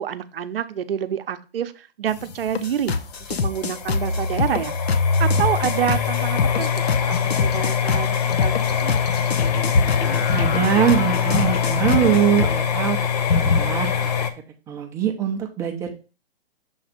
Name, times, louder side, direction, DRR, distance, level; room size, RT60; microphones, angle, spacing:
voice 1, 0.0-2.9 3.3-4.8 5.2-8.5 8.8-9.1, right 9 dB, 65° right, 10 dB, 0.7 m, -27 dB
sound 1, 2.1-14.3, left 6 dB, 40° left, 0.7 m, -23 dB
sound 2, 2.5-12.6, left 5 dB, 75° left, 0.9 m, -26 dB
voice 2, 10.3-14.1 14.7-15.9, right 9 dB, 10° right, 3 dB, 0.5 m, -22 dB
7.0 x 3.2 x 5.1 m, 0.32 s
hypercardioid pair, 140°, 31 cm